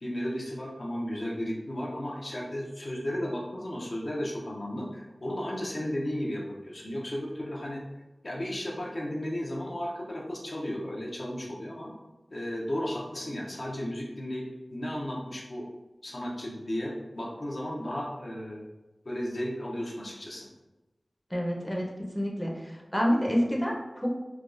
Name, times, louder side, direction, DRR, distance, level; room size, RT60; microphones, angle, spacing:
voice 1, 0.0-7.8 8.2-11.9 12.3-14.5 14.7-15.7 16.0-18.7 19.1-20.5, equal, 60° left, -3 dB, 0.6 m, -34 dB
voice 2, 21.3-21.8 22.1-24.2, equal, 5° left, -2 dB, 0.6 m, -28 dB
3.4 x 2.3 x 2.4 m, 1.0 s
wide cardioid pair, 45°, 0 cm